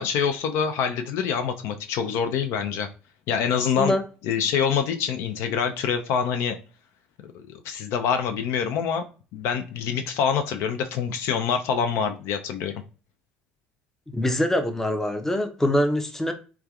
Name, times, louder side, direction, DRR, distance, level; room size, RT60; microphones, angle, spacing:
voice 1, 0.0-2.9 3.3-4.0 4.2-6.6 7.5-9.0 9.3-12.7, left 7 dB, 65° left, 0.3 m, -25 dB
voice 2, 14.1-16.3, left 1 dB, 10° left, 0.5 m, -24 dB
3.3 x 2.3 x 2.3 m
hypercardioid pair, 65°, 5 cm